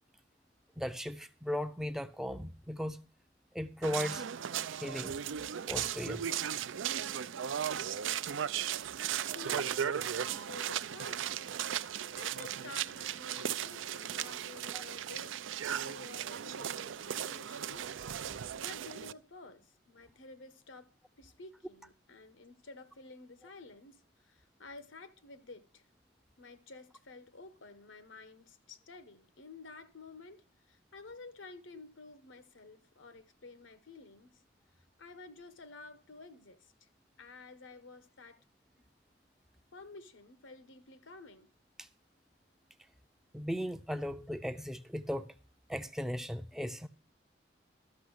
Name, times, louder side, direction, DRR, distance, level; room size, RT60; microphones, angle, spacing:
voice 1, 0.8-3.0 3.5-4.3 4.8-5.2 5.6-6.3 14.7-14.8 41.8-41.9 43.3-45.3 45.7-46.9, equal, ahead, 0.4 m, -37 dB
sound 1, 3.8-19.1, right 9 dB, 90° right, 0.4 m, -36 dB
voice 2, 9.2-11.5 12.1-15.4 15.7-17.9 18.5-20.9 21.2-25.8 26.4-34.4 35.0-36.9 37.2-38.4 39.7-41.5, left 3 dB, 90° left, 1.1 m, -52 dB
13.0 x 6.3 x 6.3 m
head